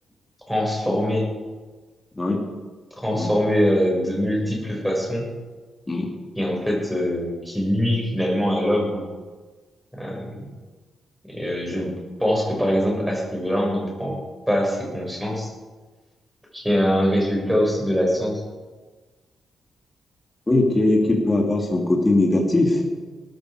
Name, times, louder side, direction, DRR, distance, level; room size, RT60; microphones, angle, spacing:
voice 1, 0.5-1.3 3.0-5.3 6.4-9.1 9.9-10.5 11.2-11.9 12.2-14.2 14.5-15.5 16.5-18.4, equal, ahead, -2 dB, 6.3 m, -23 dB
voice 2, 20.5-22.9, left 2 dB, 20° left, -1 dB, 2.9 m, -20 dB
18.5 x 14.5 x 5.1 m, 1.3 s
cardioid pair, 115°, 0 cm